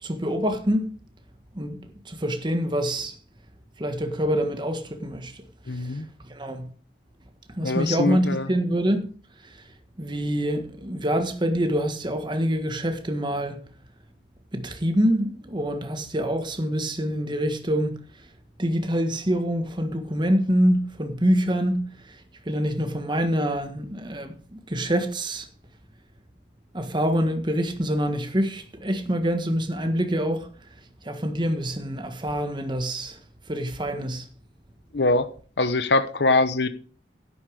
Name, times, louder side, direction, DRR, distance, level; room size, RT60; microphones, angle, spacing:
voice 1, 0.0-0.9 1.5-3.2 3.8-5.4 5.7-6.7 7.5-9.1 9.4-9.6 10.0-13.6 14.5-18.3 18.6-22.2 22.4-25.5 26.7-30.5 31.0-33.2 33.5-34.3, equal, 25° right, 1.5 m, -26 dB
voice 2, 5.7-6.1 7.6-8.5 34.9-35.3 35.6-36.7, left 3 dB, 70° left, 0.9 m, -23 dB
11.0 x 9.9 x 4.8 m
head